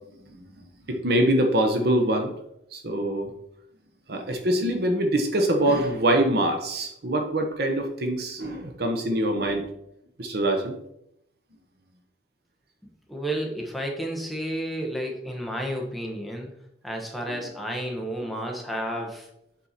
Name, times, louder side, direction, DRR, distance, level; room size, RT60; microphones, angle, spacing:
voice 1, 0.9-2.3 2.7-3.3 4.1-9.6 10.2-10.7 17.3-17.4, right 1 dB, 60° right, 4 dB, 1.1 m, -24 dB
voice 2, 13.1-16.5 16.8-19.3, right 1 dB, ahead, 0 dB, 1.1 m, -31 dB
7.7 x 4.4 x 4.2 m, 0.77 s
head